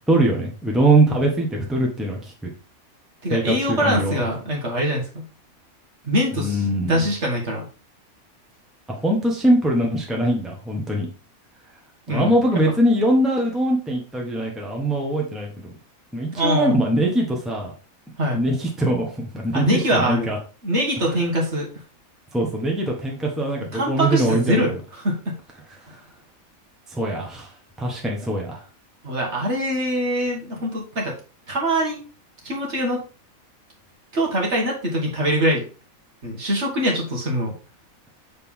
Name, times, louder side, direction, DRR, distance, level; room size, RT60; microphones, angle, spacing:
voice 1, 0.1-2.5 3.3-4.2 6.4-7.0 8.9-11.1 12.1-15.7 16.1-17.7 18.3-20.4 22.3-24.6 26.9-27.5 27.8-28.6, right 1 dB, ahead, -1 dB, 1.3 m, -22 dB
voice 2, 3.2-5.2 6.0-7.7 12.1-12.3 16.4-16.8 18.2-18.4 19.5-20.3 20.6-21.7 23.7-25.3 25.9-26.0 29.0-31.2 31.5-32.0 32.4-33.0 34.1-35.6 36.2-37.5, equal, 55° right, -1 dB, 2.0 m, -23 dB
6.7 x 4.2 x 3.7 m, 0.35 s
omnidirectional pair, 1.5 m